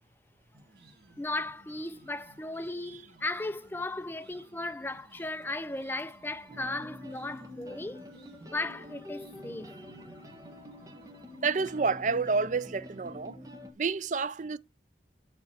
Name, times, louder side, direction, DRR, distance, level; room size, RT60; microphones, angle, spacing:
sound 1, 0.5-12.6, right 2 dB, 60° right, 1.8 m, -57 dB
voice 1, 1.2-8.1 8.4-9.8, left 2 dB, 10° left, 0.5 m, -36 dB
sound 2, 6.5-13.7, left 1 dB, 20° right, 1.5 m, -47 dB
voice 2, 11.4-13.4 13.8-14.6, right 4 dB, 40° right, 0.4 m, -29 dB
8.2 x 4.8 x 5.0 m
head